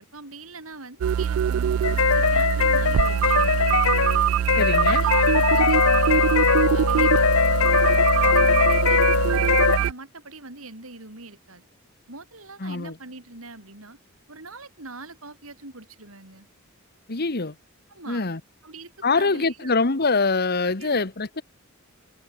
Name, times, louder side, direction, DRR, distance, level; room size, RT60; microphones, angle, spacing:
voice 1, 0.0-3.6 4.8-6.4 6.7-11.7 12.1-14.0 14.3-16.5 17.9-18.2 18.6-19.8 20.8-21.0, right 3 dB, 90° right, 6.1 m, -42 dB
sound 1, 1.0-9.9, right 9 dB, 75° right, 0.3 m, -23 dB
sound 2, 1.8-9.8, left 6 dB, 90° left, 0.8 m, -21 dB
voice 2, 4.6-5.0 12.6-12.9 17.1-17.5 18.1-18.4 19.0-21.4, left 4 dB, 50° left, 1.4 m, -24 dB
head